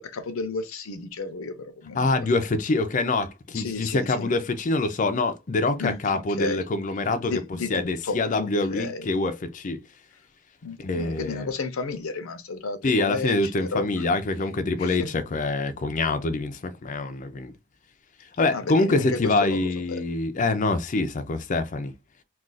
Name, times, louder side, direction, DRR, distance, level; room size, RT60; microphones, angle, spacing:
voice 1, 0.0-2.1 3.5-4.3 5.8-6.0 6.4-6.6 7.2-9.1 10.6-13.9 14.8-15.1 18.5-20.0, left 3 dB, 80° left, 0.6 m, -32 dB
voice 2, 1.9-7.4 7.7-9.8 10.8-11.5 12.8-17.5 18.4-21.9, left 2 dB, 40° left, 0.5 m, -25 dB
2.4 x 2.4 x 3.8 m
head